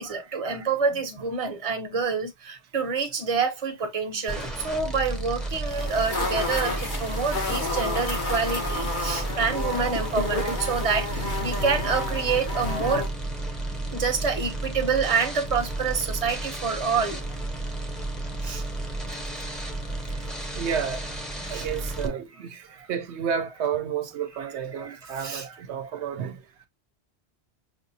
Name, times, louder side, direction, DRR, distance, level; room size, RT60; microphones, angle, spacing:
voice 1, 0.0-13.1 13.9-17.2 18.4-18.6 21.5-21.7 22.8-22.9 24.7-25.4, right 5 dB, 35° right, 0.9 m, -27 dB
sound 1, 4.3-22.1, right 2 dB, ahead, 0.9 m, -32 dB
sound 2, 5.7-13.1, left 2 dB, 45° left, 1.2 m, -31 dB
voice 2, 20.5-21.1 21.5-26.4, right 7 dB, 85° right, 0.9 m, -31 dB
6.0 x 2.5 x 2.7 m
omnidirectional pair, 1.1 m